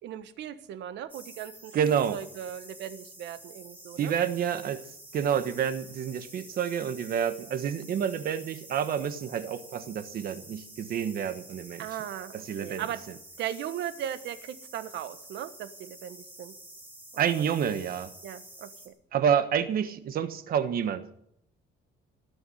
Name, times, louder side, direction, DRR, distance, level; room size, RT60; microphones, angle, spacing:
voice 1, 0.0-4.1 5.4-5.7 11.8-12.3 12.6-13.0 13.4-16.5 17.1-17.4 18.2-18.9, right 10 dB, 70° right, 11 dB, 1.3 m, -38 dB
sound 1, 1.1-18.9, right 1 dB, 10° right, 4.0 m, -49 dB
voice 2, 1.7-2.2 4.0-4.8 5.1-11.9 12.3-12.8 17.2-18.1 19.1-21.0, right 8 dB, 50° right, 11 dB, 1.3 m, -28 dB
19.0 x 7.1 x 10.0 m, 0.74 s
cardioid pair, 150°, 19 cm